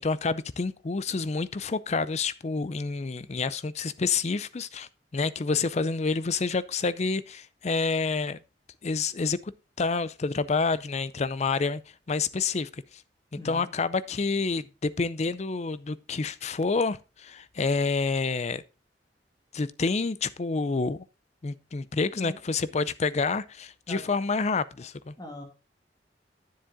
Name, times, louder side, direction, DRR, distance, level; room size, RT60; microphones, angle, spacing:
voice 1, 0.0-8.4 8.8-9.5 9.8-11.8 12.1-12.7 13.4-18.6 19.5-21.0 21.4-25.1, left 4 dB, 40° left, 0.5 m, -28 dB
voice 2, 13.4-13.7 22.1-22.4 23.9-24.0 25.2-25.4, left 1 dB, 20° left, 2.1 m, -41 dB
10.0 x 7.4 x 3.6 m
head